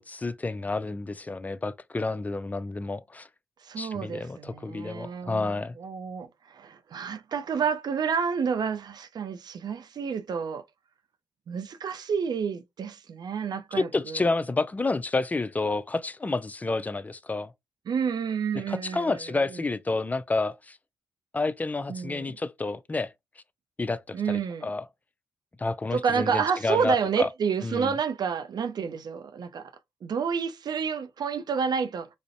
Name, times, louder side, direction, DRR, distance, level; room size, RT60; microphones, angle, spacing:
voice 1, 0.0-3.3 3.8-5.8 13.7-17.5 18.7-20.8 21.3-23.1 23.8-24.9 25.6-27.3 27.6-28.0, left 3 dB, 20° left, 0.3 m, -30 dB
voice 2, 3.6-10.6 11.5-14.2 17.9-19.2 19.5-19.6 21.9-22.3 24.1-24.7 25.9-29.7 30.0-32.1, right 6 dB, 55° right, 0.4 m, -29 dB
2.5 x 2.0 x 2.5 m
supercardioid pair, 45°, 8 cm